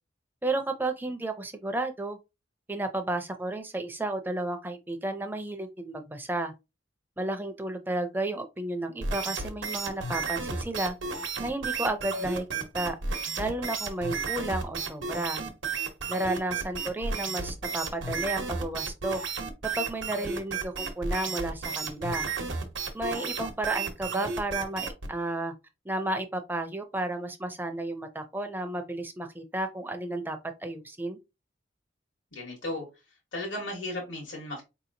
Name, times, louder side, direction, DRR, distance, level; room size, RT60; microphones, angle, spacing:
voice 1, 0.4-2.2 2.7-6.5 7.2-11.0 11.4-13.0 13.4-15.4 16.1-19.2 19.6-22.3 22.9-25.5 25.8-31.2, right 2 dB, 10° right, 0.5 m, -32 dB
sound 1, 9.0-25.1, right 4 dB, 85° right, 0.9 m, -33 dB
voice 2, 32.3-32.9 33.3-34.6, left 1 dB, 85° left, 1.2 m, -35 dB
4.6 x 2.8 x 2.6 m
head